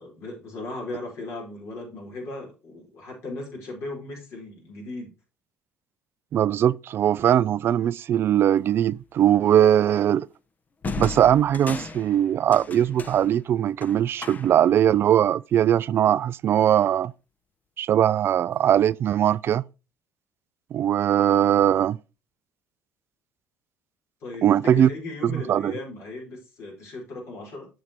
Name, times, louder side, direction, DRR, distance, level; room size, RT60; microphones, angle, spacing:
voice 1, 0.0-5.1 24.2-27.7, left 2 dB, 60° left, 4.9 m, -37 dB
voice 2, 6.3-10.3 11.0-17.1 17.8-19.6 20.7-22.0 24.4-24.9 25.2-25.8, right 10 dB, 50° right, 0.3 m, -20 dB
sound 1, 8.8-9.0 10.8-14.8, left 4 dB, 35° left, 1.0 m, -36 dB
7.1 x 6.5 x 4.5 m
hypercardioid pair, 65°, 5 cm